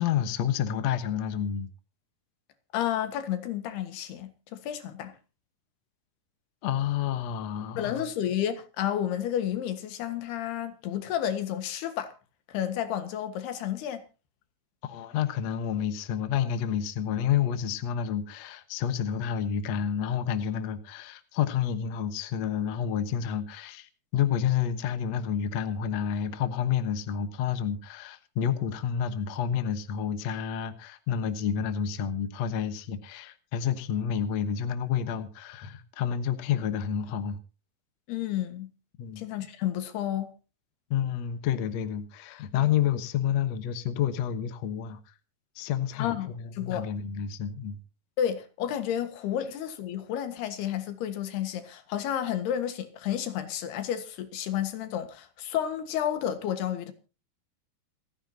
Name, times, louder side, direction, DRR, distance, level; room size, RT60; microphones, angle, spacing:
voice 1, 0.0-1.7 6.6-8.0 14.8-37.4 39.0-39.3 40.9-45.0 45.6-47.8, left 8 dB, 65° left, 1.8 m, -29 dB
voice 2, 2.7-5.2 7.8-12.1 12.5-14.0 38.1-38.7 39.2-40.3 46.0-46.9 48.2-56.9, left 10 dB, 85° left, 3.6 m, -31 dB
28.0 x 10.0 x 2.8 m
omnidirectional pair, 4.5 m